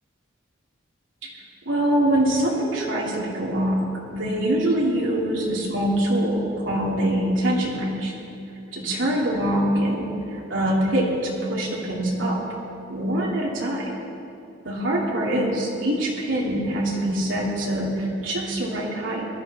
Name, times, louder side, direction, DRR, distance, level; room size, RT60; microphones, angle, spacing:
voice 1, 1.7-3.8 4.1-8.1 8.7-10.1 10.5-12.4 12.9-13.9 14.6-19.3, right 1 dB, 85° right, -4 dB, 2.7 m, -24 dB
21.5 x 12.0 x 4.1 m, 2.8 s
head